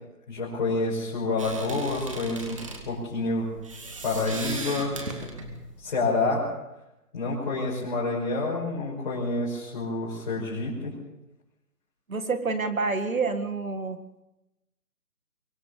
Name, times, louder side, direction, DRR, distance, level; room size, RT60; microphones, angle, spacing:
voice 1, 0.3-2.6 2.9-3.5 4.0-4.9 5.8-6.4 7.1-10.9, left 3 dB, 30° left, -7 dB, 5.5 m, -28 dB
sound 1, 1.4-6.4, right 2 dB, 20° right, 1.9 m, -38 dB
voice 2, 12.1-14.0, right 4 dB, 60° right, 8 dB, 2.1 m, -28 dB
23.5 x 17.5 x 6.9 m, 0.94 s
hypercardioid pair, 175°, 46 cm